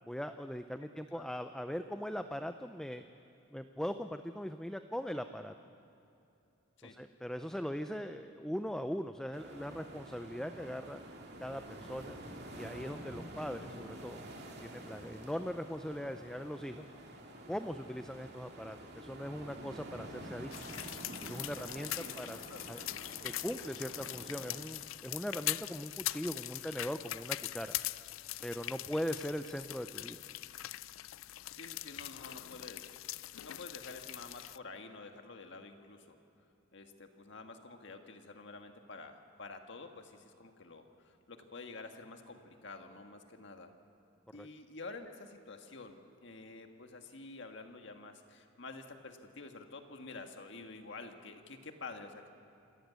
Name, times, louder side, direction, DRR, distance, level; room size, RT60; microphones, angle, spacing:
voice 1, 0.0-3.0 3.5-5.5 6.8-11.0 11.4-12.2 12.5-14.3 14.6-16.9 17.5-20.5 21.2-22.8 23.2-27.7 28.4-30.2 44.4-44.5, equal, 5° left, 8 dB, 0.5 m, -40 dB
sound 1, 9.3-24.7, right 1 dB, 55° right, 2.6 m, -48 dB
sound 2, 20.5-34.6, left 15 dB, 85° left, 0.4 m, -42 dB
voice 2, 22.0-23.1 31.5-32.9 33.4-36.2 36.7-43.7 44.3-52.3, left 3 dB, 65° left, 5 dB, 1.6 m, -49 dB
27.0 x 14.5 x 8.2 m, 2.8 s
head